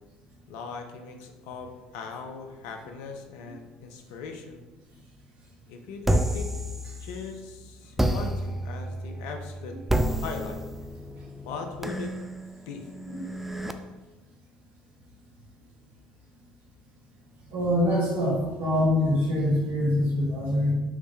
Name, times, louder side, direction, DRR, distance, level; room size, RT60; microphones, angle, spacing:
voice 1, 0.5-4.6 5.7-6.5 7.0-9.8 10.2-10.6 11.5-12.1 12.7-12.8, left 5 dB, 70° left, 4 dB, 0.6 m, -39 dB
sound 1, 6.0-7.4 8.0-13.7, right 1 dB, 5° right, 0.4 m, -30 dB
voice 2, 17.5-20.7, left 1 dB, 60° right, -4 dB, 1.3 m, -24 dB
4.9 x 3.1 x 3.3 m, 1.2 s
hypercardioid pair, 60°, 4 cm